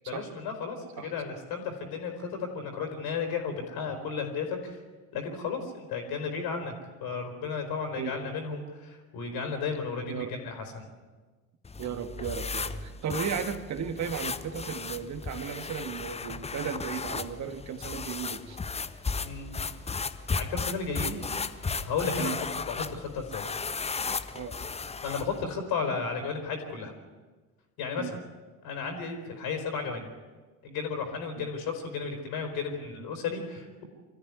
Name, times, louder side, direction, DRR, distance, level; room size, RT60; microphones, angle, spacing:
voice 1, 0.1-4.8 5.1-6.7 7.0-10.9 19.2-19.6 20.3-21.2 21.8-22.4 22.7-23.5 25.0-26.9 27.8-28.2 28.6-30.1 30.6-33.9, left 5 dB, 55° left, 4 dB, 4.4 m, -34 dB
sound 1, 11.6-25.4, left 4 dB, 15° left, 0.9 m, -35 dB
voice 2, 11.8-18.6 22.2-22.4 24.3-24.5 28.0-28.1 31.4-31.5, right 7 dB, 40° right, 9 dB, 2.2 m, -35 dB
25.0 x 14.0 x 9.7 m, 1.3 s
figure-of-eight pair, 65°, 44 cm